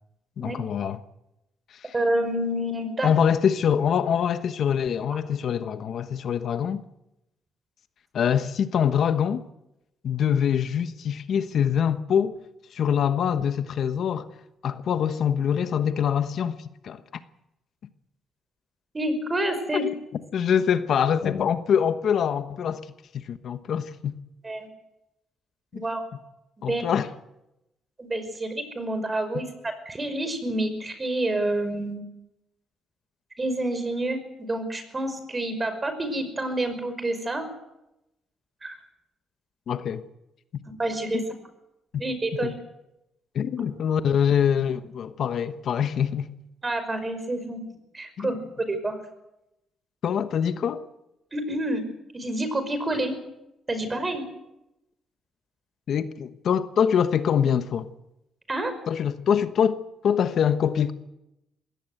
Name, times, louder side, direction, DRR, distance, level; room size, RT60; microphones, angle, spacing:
voice 1, 0.4-1.0 1.8-1.9 3.0-6.8 8.1-9.4 10.0-12.4 12.7-14.3 14.6-17.0 19.8-19.9 20.3-22.8 23.1-24.2 25.7-25.8 26.6-27.1 39.7-40.0 41.1-41.2 41.9-42.0 42.4-42.5 43.3-46.3 48.2-48.3 50.0-50.8 55.9-57.9 58.9-59.8 60.0-60.9, left 8 dB, 65° left, 1.2 m, -24 dB
voice 2, 1.9-3.1 18.9-19.9 24.4-24.7 25.7-26.0 26.7-26.8 28.0-32.0 33.4-37.5 38.6-38.8 40.8-41.2 42.0-42.5 46.6-47.6 47.9-48.4 48.7-49.0 51.3-51.8 52.1-53.2 53.7-54.2 58.5-58.7, right 1 dB, 25° right, 5.5 m, -28 dB
21.0 x 17.5 x 8.1 m
cardioid pair, 90°, 0 cm